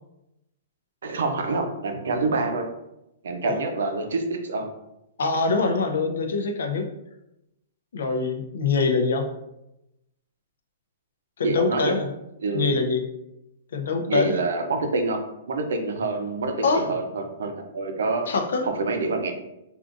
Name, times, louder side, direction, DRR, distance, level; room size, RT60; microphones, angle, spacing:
voice 1, 1.0-2.7 3.2-4.7 11.4-11.9 12.4-12.7 14.1-15.2 15.5-18.3 18.6-19.3, right 3 dB, 80° right, 4 dB, 0.6 m, -26 dB
voice 2, 5.2-6.9 7.9-9.3 11.4-12.1 12.5-13.0 13.7-14.4 16.6-16.9 18.3-18.6, left 4 dB, 75° left, 5 dB, 0.5 m, -24 dB
3.6 x 2.5 x 2.5 m, 0.88 s
hypercardioid pair, 175°, 0 cm